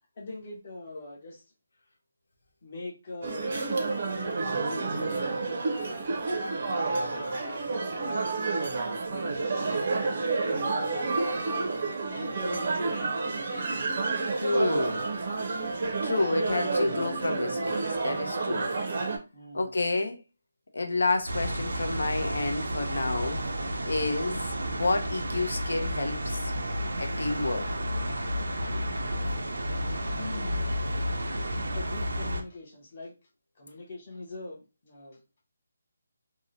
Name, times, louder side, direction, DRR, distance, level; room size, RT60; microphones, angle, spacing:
voice 1, 0.2-1.5 2.6-3.6 4.3-8.4 9.1-11.7 12.1-13.2 14.5-14.6 19.3-19.8 30.0-31.1 31.7-33.1 33.6-35.2, left 2 dB, 30° left, 0.7 m, -42 dB
sound 1, 3.2-19.2, right 3 dB, 35° right, 0.5 m, -30 dB
voice 2, 14.4-15.0 16.0-18.7 19.5-20.2 20.7-23.4 23.8-24.4 24.7-26.5 27.0-27.7, left 2 dB, 80° left, 0.6 m, -29 dB
sound 2, 21.3-32.4, equal, 90° right, 0.5 m, -31 dB
2.7 x 2.0 x 2.6 m
hypercardioid pair, 175°, 0 cm